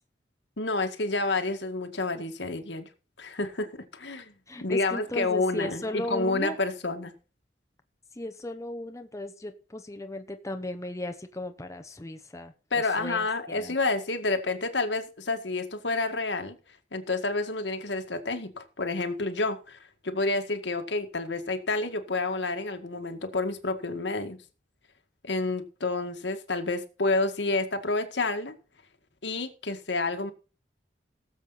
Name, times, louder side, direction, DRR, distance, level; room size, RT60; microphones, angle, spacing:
voice 1, 0.6-2.9 3.2-4.3 4.6-7.1 12.7-16.5 16.9-19.8 20.0-24.4 25.2-28.5 29.2-30.3, left 3 dB, 80° left, 6 dB, 1.9 m, -29 dB
voice 2, 4.5-6.6 8.1-13.8, left 1 dB, 20° left, 7 dB, 0.9 m, -36 dB
18.0 x 7.5 x 4.1 m, 0.35 s
head